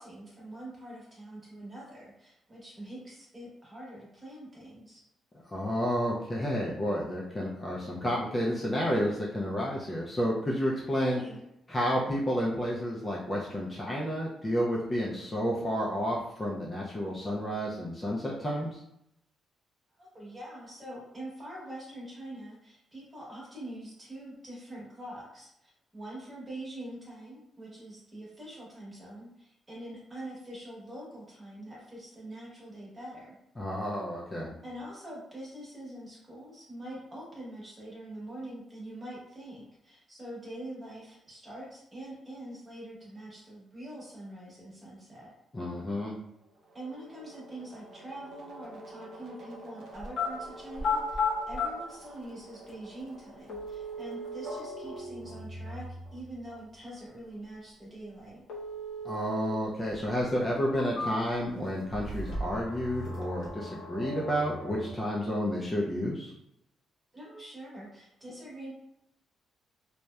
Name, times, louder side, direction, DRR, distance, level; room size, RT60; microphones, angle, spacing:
voice 1, 0.0-5.0 11.0-11.4 20.0-33.4 34.6-45.3 46.7-58.4 67.1-68.7, right 1 dB, 20° right, -6 dB, 1.0 m, -44 dB
voice 2, 5.5-11.2 11.7-18.8 33.6-34.5 45.5-46.2 59.0-66.3, equal, 15° left, -5 dB, 0.3 m, -31 dB
sound 1, 46.5-56.6 61.8-64.9, equal, 65° right, 0.5 m, -45 dB
sound 2, 50.0-50.3 50.7-51.7 52.7-52.8 53.5-54.5 58.5-59.5 59.9-60.0 60.6-61.5 61.9-62.6 62.9-63.5, left 3 dB, 80° left, 0.6 m, -33 dB
2.7 x 2.0 x 2.2 m, 0.80 s
cardioid pair, 155°, 0 cm